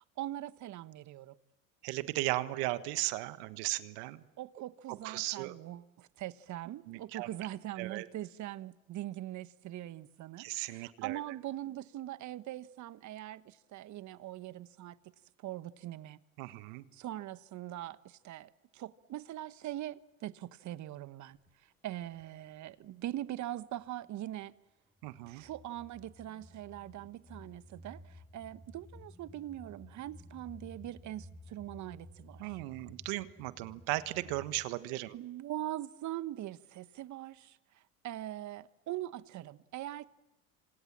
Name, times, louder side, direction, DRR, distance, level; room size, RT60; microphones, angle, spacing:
voice 1, 0.0-1.4 4.4-15.0 15.4-16.2 16.9-21.4 21.8-24.5 25.3-32.6 35.1-37.6 38.0-40.1, right 14 dB, 45° right, 1.2 m, -42 dB
voice 2, 1.8-4.3 4.9-5.6 6.9-7.3 7.8-8.1 10.4-11.2 16.4-16.8 25.0-25.4 32.4-35.2, right 19 dB, 65° right, 1.4 m, -36 dB
sound 1, 21.3-21.5 22.0-23.1 23.5-24.4 25.0-34.7, left 1 dB, 5° left, 7.6 m, -55 dB
28.0 x 26.5 x 7.5 m
hypercardioid pair, 90°, 41 cm